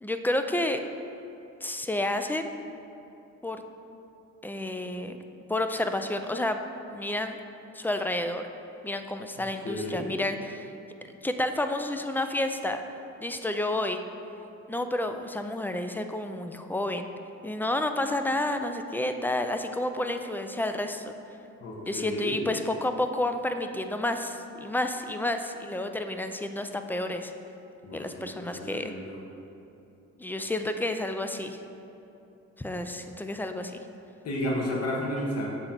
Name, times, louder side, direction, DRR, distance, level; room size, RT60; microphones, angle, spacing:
voice 1, 0.0-0.8 1.6-2.5 3.4-3.6 4.4-5.2 5.5-6.6 6.9-7.4 7.7-8.4 8.8-10.7 11.2-12.8 13.2-14.0 14.7-17.1 17.4-21.1 21.9-27.3 27.9-28.9 30.2-31.6 32.6-33.8, left 1 dB, 5° left, 7 dB, 0.4 m, -30 dB
voice 2, 9.6-10.0 21.6-22.4 27.8-29.2 34.2-35.5, left 1 dB, 55° left, -2 dB, 1.4 m, -32 dB
7.0 x 3.8 x 5.8 m, 2.9 s
cardioid pair, 90°, 30 cm